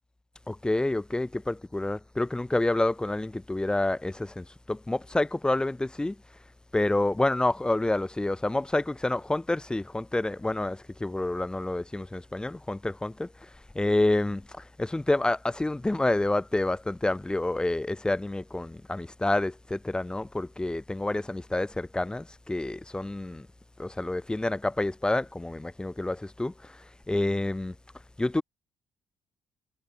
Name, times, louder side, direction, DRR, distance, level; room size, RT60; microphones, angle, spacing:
voice 1, 0.5-6.2 6.7-23.5 23.8-27.7 28.2-28.4, left 2 dB, 10° left, 1.4 m, -28 dB
cardioid pair, 80°, 7 cm